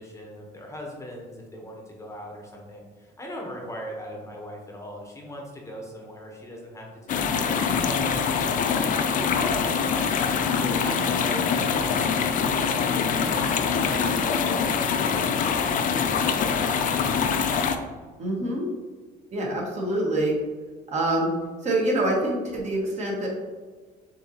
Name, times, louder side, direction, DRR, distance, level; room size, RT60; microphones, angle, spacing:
voice 1, 0.0-9.3 9.6-13.5 13.8-17.6, equal, 15° left, 0 dB, 0.8 m, -40 dB
sound 1, 7.1-17.8, left 6 dB, 50° left, 0.4 m, -24 dB
voice 2, 18.2-18.7 19.3-20.4 20.9-21.3 21.6-23.3, right 1 dB, 40° right, -2 dB, 1.4 m, -25 dB
6.9 x 2.7 x 2.8 m, 1.5 s
cardioid pair, 110°, 17 cm